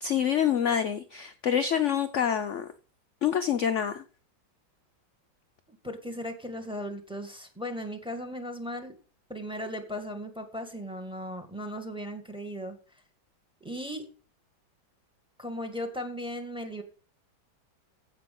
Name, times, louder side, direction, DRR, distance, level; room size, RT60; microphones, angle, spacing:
voice 1, 0.0-2.7 3.2-4.0, left 8 dB, 60° left, 8 dB, 0.7 m, -26 dB
voice 2, 5.8-8.9 9.3-12.8 13.6-14.0 15.4-16.8, equal, 5° right, 6 dB, 1.7 m, -37 dB
15.5 x 6.1 x 3.8 m, 0.38 s
omnidirectional pair, 2.1 m